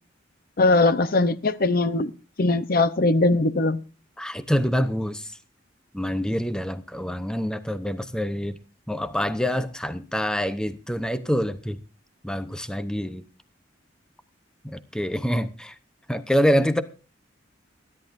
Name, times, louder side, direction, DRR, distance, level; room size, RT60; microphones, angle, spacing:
voice 1, 0.6-2.1 2.4-3.8, left 2 dB, 50° left, 0.8 m, -20 dB
voice 2, 4.2-5.3 5.9-8.6 8.9-11.8 12.2-13.2 14.6-15.7 16.1-16.8, equal, 5° left, 0.8 m, -26 dB
29.0 x 11.0 x 2.6 m
head